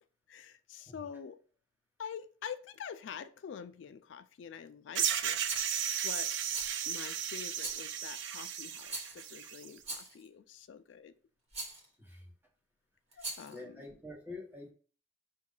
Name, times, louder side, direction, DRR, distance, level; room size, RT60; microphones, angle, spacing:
voice 1, 0.3-1.4 2.0-5.4 6.0-6.3 6.9-11.1 13.2-13.8, left 7 dB, 75° left, 11 dB, 0.3 m, -46 dB
sound 1, 4.9-9.7, right 8 dB, 75° right, 0.4 m, -34 dB
Rattle, 5.5-5.7 6.5-7.0 7.6-8.0 8.9-9.3 9.8-10.3 11.5-11.9 13.1-13.6, right 2 dB, 35° right, 1.2 m, -42 dB
voice 2, 12.0-12.3 13.2-14.7, left 2 dB, 10° right, 0 dB, 1.0 m, -47 dB
5.1 x 2.3 x 3.7 m, 0.41 s
head